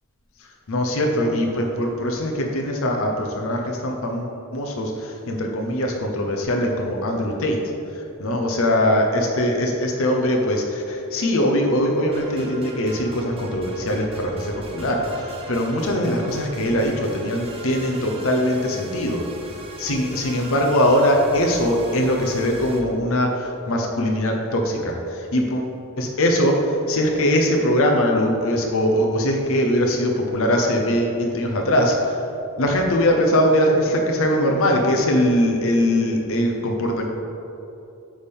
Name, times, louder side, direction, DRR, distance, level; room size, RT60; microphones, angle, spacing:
voice 1, 0.7-7.6 7.9-19.2 19.5-25.7 26.0-32.2 32.6-37.1, equal, 65° left, 1 dB, 0.8 m, -21 dB
sound 1, 12.1-22.8, right 2 dB, 25° right, 0.7 m, -39 dB
8.6 x 3.5 x 5.4 m, 2.8 s
head